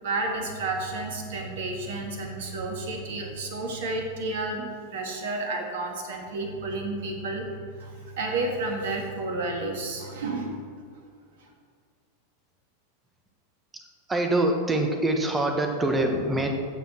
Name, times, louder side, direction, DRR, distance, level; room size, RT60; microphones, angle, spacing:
voice 1, 0.0-7.5 7.8-10.6, right 2 dB, 55° right, 2 dB, 2.0 m, -31 dB
voice 2, 14.1-16.5, right 1 dB, 15° right, 4 dB, 1.4 m, -24 dB
15.5 x 7.1 x 4.4 m, 2.1 s
figure-of-eight pair, 90°, 0 cm